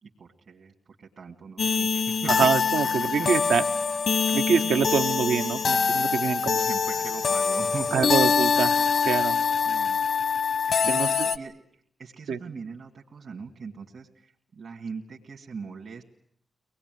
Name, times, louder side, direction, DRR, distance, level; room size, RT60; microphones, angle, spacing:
voice 1, 0.0-2.5 3.0-3.6 6.5-8.3 9.7-10.0 10.8-11.6 12.0-16.0, right 5 dB, 70° right, 0 dB, 2.4 m, -40 dB
sound 1, 1.6-11.4, left 6 dB, 70° left, 1.1 m, -24 dB
voice 2, 2.3-3.6 4.3-6.7 7.9-8.7 9.0-9.4 10.9-11.3 12.3-12.4, right 6 dB, 90° right, 7 dB, 0.9 m, -25 dB
24.5 x 19.5 x 9.4 m, 0.69 s
supercardioid pair, 45°, 0 cm